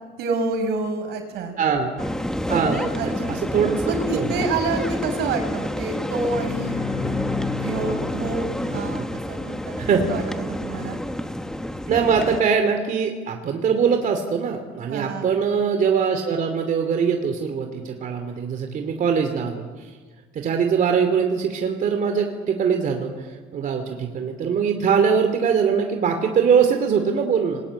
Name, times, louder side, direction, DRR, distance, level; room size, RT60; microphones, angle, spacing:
voice 1, 0.2-1.6 2.4-3.5 3.8-6.8 7.6-10.2 10.5-11.0 14.9-15.4, right 3 dB, 80° right, 6 dB, 5.5 m, -28 dB
voice 2, 1.6-1.9 2.5-3.8 4.1-4.4 8.7-8.9 9.8-10.1 11.9-19.9 20.3-23.3 23.5-27.6, right 6 dB, 50° right, 5 dB, 2.7 m, -22 dB
sound 1, 2.0-12.4, left 1 dB, 5° left, 1.3 m, -29 dB
Bowed string instrument, 5.8-9.4, left 7 dB, 55° left, 6.0 m, -33 dB
26.5 x 21.0 x 8.8 m, 1.5 s
cardioid pair, 110°, 17 cm